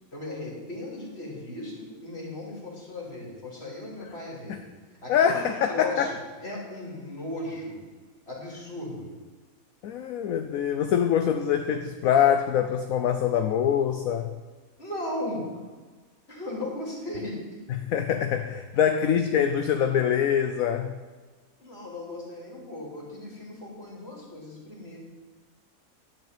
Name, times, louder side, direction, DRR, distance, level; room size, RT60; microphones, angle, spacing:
voice 1, 0.1-4.6 5.0-6.1 6.4-7.8 8.3-9.1 14.8-15.4 16.3-17.4 21.6-25.0, left 1 dB, 40° left, -3 dB, 3.4 m, -36 dB
voice 2, 5.1-6.1 9.8-14.3 17.7-21.0, left 8 dB, 65° left, 7 dB, 1.1 m, -24 dB
11.0 x 6.0 x 8.9 m, 1.3 s
omnidirectional pair, 1.7 m